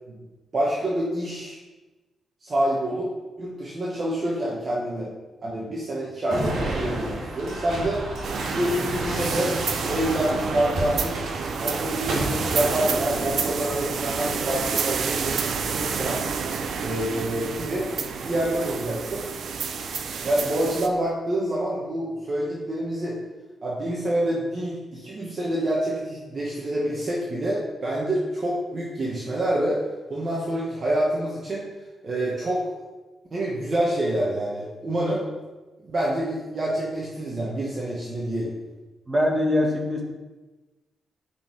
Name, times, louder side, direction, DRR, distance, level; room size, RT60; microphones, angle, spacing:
voice 1, 0.5-1.6 2.4-3.1 3.4-5.1 5.4-8.0 8.5-11.2 11.6-16.2 16.8-17.9 18.2-19.2 20.2-23.2 23.6-29.8 30.1-31.7 32.0-32.7 33.3-35.2 35.8-38.5, right 1 dB, 35° right, -5 dB, 1.3 m, -27 dB
sound 1, 6.3-15.7 16.4-16.9 18.0-18.7, right 2 dB, 75° right, 2.2 m, -32 dB
sound 2, 8.2-20.9, right 6 dB, 60° right, 0.6 m, -29 dB
voice 2, 39.1-40.0, left 1 dB, 15° right, -1 dB, 1.5 m, -22 dB
8.3 x 5.4 x 4.7 m, 1.2 s
wide cardioid pair, 160°, 0 cm